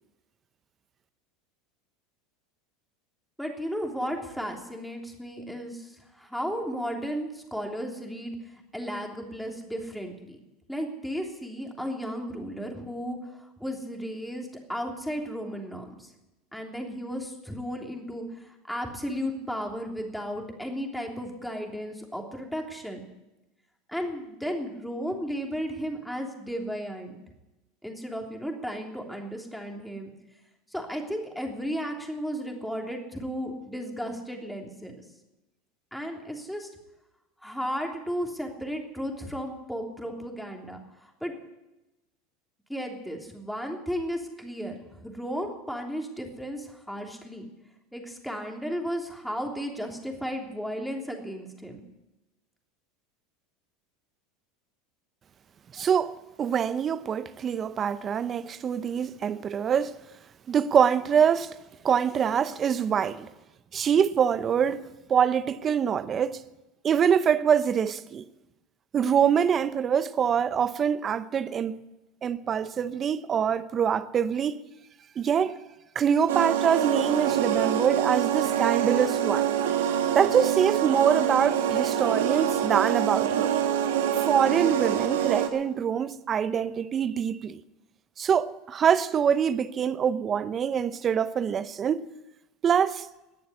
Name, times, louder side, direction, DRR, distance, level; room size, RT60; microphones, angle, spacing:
voice 1, 3.4-8.4 8.7-10.4 10.7-16.1 16.5-23.0 23.9-27.1 27.8-30.1 30.7-35.0 35.9-36.7 37.4-41.4 42.7-47.5 47.9-51.8, equal, ahead, 3.2 m, -34 dB
voice 2, 55.7-60.0 60.5-61.6 61.8-63.3 63.7-66.4 66.8-68.2 68.9-71.8 72.2-74.6 75.2-75.6 75.9-79.5 80.1-83.6 84.3-87.6 88.2-92.1 92.6-93.1, right 8 dB, 35° right, 0.8 m, -25 dB
sound 1, 76.3-85.5, right 9 dB, 85° right, 1.8 m, -25 dB
20.0 x 7.0 x 9.8 m
hypercardioid pair, 100°, 0 cm